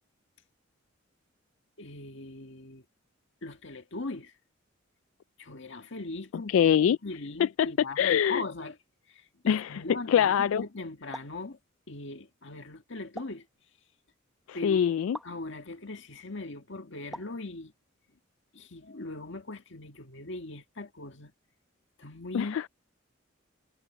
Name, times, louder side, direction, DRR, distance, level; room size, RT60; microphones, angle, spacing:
voice 1, 1.8-2.8 3.4-4.3 5.4-8.8 9.1-11.6 11.9-13.5 14.5-15.0 15.2-17.7 18.5-21.3 22.0-22.6, left 2 dB, 65° left, 1.8 m, -40 dB
voice 2, 6.5-7.0 7.4-7.7 8.0-8.4 9.5-9.8 10.1-10.6 14.5-15.2 22.3-22.7, left 8 dB, 85° left, 0.3 m, -24 dB
sound 1, 11.1-11.4 13.2-13.5 15.1-15.4 17.1-17.4, equal, ahead, 1.0 m, -43 dB
head